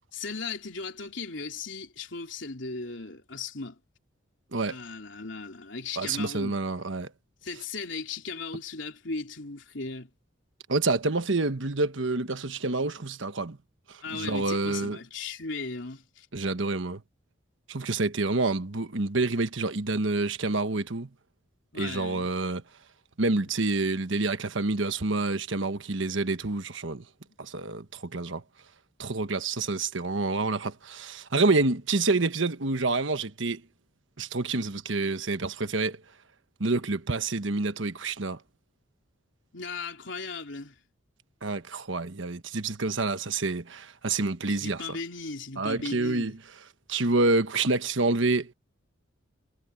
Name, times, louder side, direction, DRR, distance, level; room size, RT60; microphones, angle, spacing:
voice 1, 0.1-3.8 4.7-6.6 7.4-10.1 14.0-16.3 21.7-22.3 27.2-27.4 39.5-40.7 44.5-46.4, left 4 dB, 65° left, 3.3 m, -37 dB
voice 2, 6.0-7.1 10.7-13.6 13.9-15.0 16.3-17.0 17.7-21.1 21.7-22.6 23.2-27.0 27.4-28.4 29.0-33.6 34.2-36.0 36.6-38.4 41.4-44.8 45.6-46.3 46.9-48.5, right 3 dB, 70° right, 1.3 m, -28 dB
head